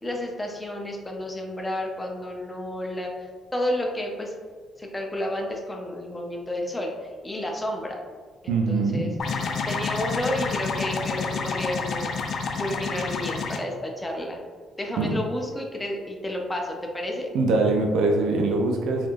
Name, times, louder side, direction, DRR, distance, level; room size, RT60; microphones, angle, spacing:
voice 1, 0.0-4.3 4.8-6.9 7.2-8.0 8.4-9.1 9.7-12.1 12.6-14.4 14.8-17.3, left 1 dB, 15° left, 1 dB, 0.5 m, -31 dB
voice 2, 8.5-9.1 15.0-15.2 17.3-19.1, right 3 dB, 85° right, 1 dB, 0.4 m, -23 dB
sound 1, 9.2-13.6, left 5 dB, 65° left, 0.3 m, -29 dB
3.4 x 2.4 x 2.5 m, 1.5 s
cardioid pair, 90°, 0 cm